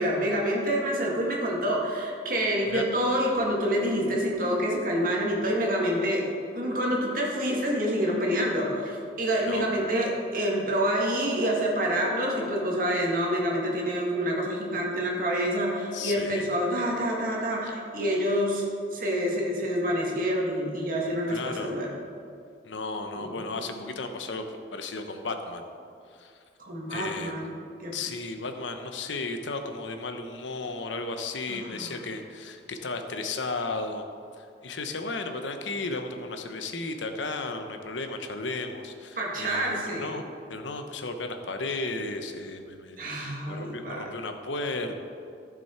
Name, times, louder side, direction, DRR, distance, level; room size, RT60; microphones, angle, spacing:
voice 1, 0.0-6.3 6.5-18.6 18.9-21.9 23.1-23.8 26.6-27.5 27.8-27.9 31.5-31.9 39.2-40.1 43.0-44.1, equal, 50° right, -2 dB, 1.9 m, -27 dB
voice 2, 9.4-9.8 15.9-16.4 21.3-21.7 22.6-24.5 24.7-25.6 26.1-26.3 26.9-27.6 27.9-34.0 34.4-40.2 40.5-45.0, left 3 dB, 90° left, 6 dB, 0.9 m, -34 dB
14.5 x 6.1 x 4.4 m, 2.4 s
head